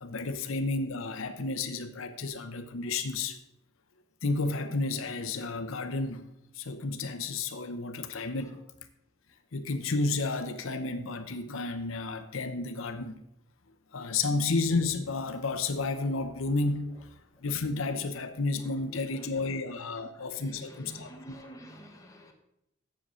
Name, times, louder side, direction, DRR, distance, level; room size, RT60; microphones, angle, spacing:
voice 1, 0.0-3.4 4.2-6.3 6.5-8.6 9.5-13.1 13.9-17.1 17.4-21.4, left 3 dB, 85° left, 8 dB, 0.8 m, -31 dB
voice 2, 19.8-22.3, equal, 15° left, 1 dB, 1.3 m, -49 dB
7.5 x 7.0 x 6.2 m, 0.81 s
head